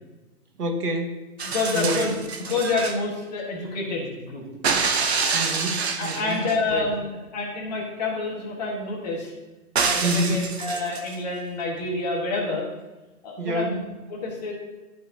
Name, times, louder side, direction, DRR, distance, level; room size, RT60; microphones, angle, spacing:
voice 1, 0.6-1.2 1.7-2.1 5.3-6.4 6.7-6.9 10.0-10.5 13.4-13.8, right 1 dB, 80° right, 3 dB, 1.5 m, -27 dB
voice 2, 1.4-4.4 6.0-9.3 9.8-12.7 13.2-13.8 14.1-14.5, left 3 dB, 25° left, -2 dB, 1.3 m, -28 dB
sound 1, 1.4-3.0 4.6-6.6 9.7-11.1 12.4-12.5, right 5 dB, 45° right, 0.7 m, -26 dB
12.0 x 4.3 x 2.7 m, 1.1 s
hypercardioid pair, 160°, 46 cm